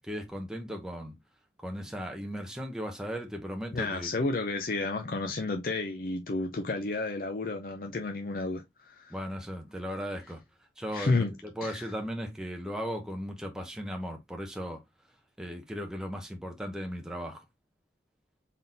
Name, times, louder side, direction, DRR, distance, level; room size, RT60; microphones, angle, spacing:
voice 1, 0.1-1.2 1.6-4.1 9.1-10.4 10.8-14.8 15.4-17.4, equal, 5° right, 0.7 m, -37 dB
voice 2, 3.7-9.2 10.9-11.3 11.6-11.9, left 3 dB, 50° left, 0.5 m, -31 dB
3.9 x 3.7 x 2.6 m
head